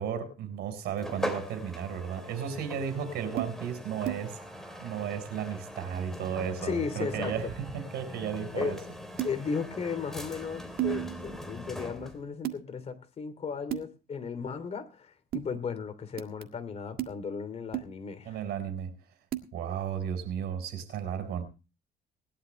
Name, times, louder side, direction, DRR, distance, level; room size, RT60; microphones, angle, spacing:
voice 1, 0.0-4.4 4.8-8.8 18.2-18.9 19.5-21.4, right 8 dB, 75° right, 4.3 m, -34 dB
sound 1, 1.0-12.2, left 1 dB, ahead, 3.1 m, -41 dB
sound 2, 3.4-3.5 4.0-4.2 9.2-9.3 10.8-11.4 12.4-12.6 13.7-13.8 15.3-15.5 16.2-16.4 17.0-17.1 17.7-17.9 19.3-19.5, right 14 dB, 60° right, 1.8 m, -32 dB
voice 2, 6.6-7.3 8.5-8.8 9.2-18.4, left 5 dB, 40° left, 2.9 m, -35 dB
20.0 x 12.0 x 3.2 m
cardioid pair, 110°, 17 cm